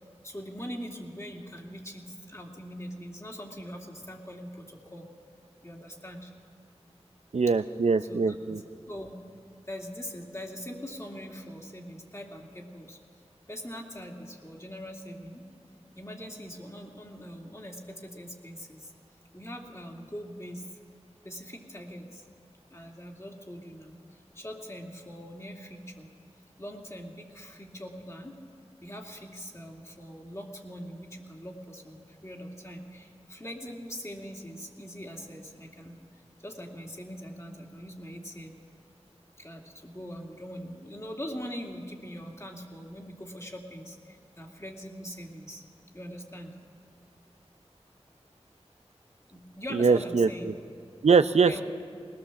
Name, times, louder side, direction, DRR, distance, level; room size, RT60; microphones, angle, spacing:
voice 1, 0.2-5.1 5.6-6.3 8.0-9.1 9.7-13.0 13.5-15.5 15.9-18.9 19.3-20.7 21.2-22.2 22.7-26.1 26.6-28.4 28.8-36.0 36.4-38.5 39.4-45.6 45.9-46.5 49.3-50.5 51.4-51.6, equal, 25° left, 0 dB, 2.6 m, -42 dB
voice 2, 7.3-8.6 49.7-50.5 51.0-51.6, right 5 dB, 80° right, 11 dB, 0.5 m, -23 dB
20.0 x 18.5 x 7.2 m, 2.2 s
wide cardioid pair, 50°, 11 cm